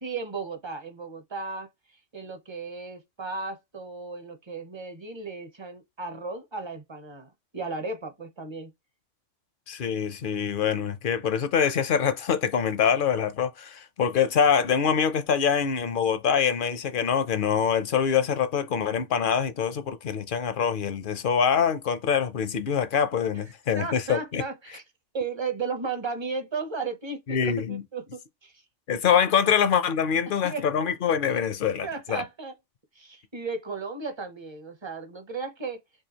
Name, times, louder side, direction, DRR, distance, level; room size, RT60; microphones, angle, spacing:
voice 1, 0.0-1.7 2.1-8.7 23.7-24.8 25.1-28.5 30.4-30.6 31.8-32.5 32.9-35.8, right 4 dB, 30° right, 0.7 m, -35 dB
voice 2, 9.7-24.4 27.3-27.8 28.9-32.2, left 7 dB, 55° left, 0.7 m, -24 dB
4.8 x 2.3 x 2.8 m
omnidirectional pair, 1.2 m